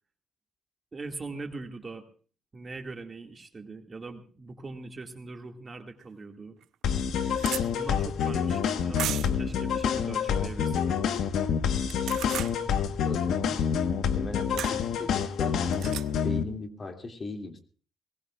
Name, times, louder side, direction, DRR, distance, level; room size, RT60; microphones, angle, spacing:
voice 1, 0.9-2.0 2.5-6.6 7.7-10.8, right 3 dB, 35° right, 3 dB, 2.2 m, -41 dB
sound 1, 6.0-6.1 6.6-6.7 6.9-7.6 9.0-9.4 11.8-12.5 14.6-14.8 15.7-16.1, right 11 dB, 80° right, 0.7 m, -34 dB
sound 2, 6.8-16.4, left 7 dB, 80° left, 1.4 m, -27 dB
voice 2, 13.0-13.6 13.9-15.1 15.4-17.6, left 3 dB, 35° left, 3 dB, 2.7 m, -38 dB
22.0 x 19.5 x 2.5 m, 0.41 s
cardioid pair, 90°, 0 cm